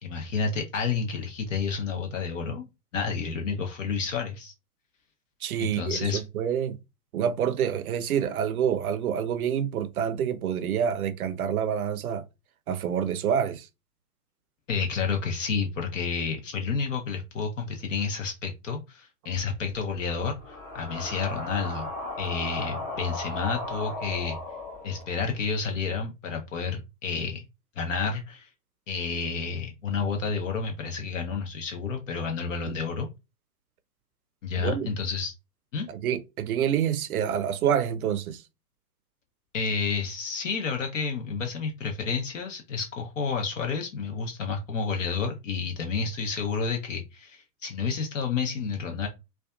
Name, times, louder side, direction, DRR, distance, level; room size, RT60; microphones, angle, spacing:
voice 1, 0.0-2.7 2.9-4.5 5.6-6.2 14.7-21.9 22.2-24.4 24.8-27.4 27.8-28.5 28.9-33.1 34.4-35.3 35.7-35.9 39.5-49.1, left 5 dB, 50° left, 0.6 m, -30 dB
voice 2, 5.4-6.8 7.1-12.2 12.7-13.7 32.7-32.8 34.6-34.9 35.9-38.4, right 8 dB, 65° right, 0.5 m, -27 dB
sound 1, 19.4-25.5, left 2 dB, 5° left, 0.4 m, -37 dB
2.5 x 2.2 x 2.3 m
figure-of-eight pair, 105°, 48 cm